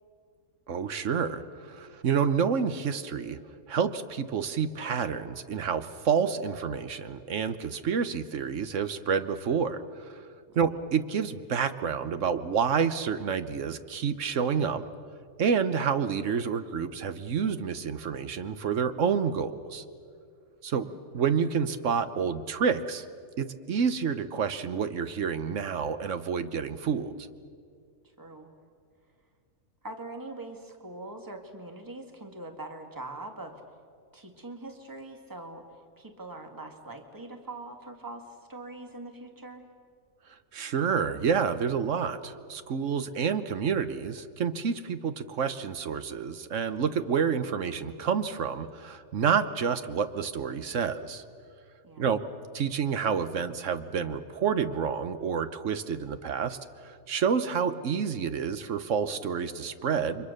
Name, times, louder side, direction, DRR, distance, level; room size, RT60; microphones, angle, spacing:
voice 1, 0.7-3.4 3.7-10.2 10.5-14.8 15.4-19.8 20.6-20.9 21.1-23.0 23.4-27.1 40.5-51.2 52.0-52.2 52.5-60.3, right 6 dB, 60° right, 11 dB, 1.3 m, -29 dB
voice 2, 28.2-28.5 29.8-33.6 34.1-35.7 36.0-39.7 51.8-52.1, right 2 dB, 15° right, 4 dB, 1.9 m, -42 dB
29.5 x 24.0 x 6.6 m, 2.3 s
omnidirectional pair, 1.5 m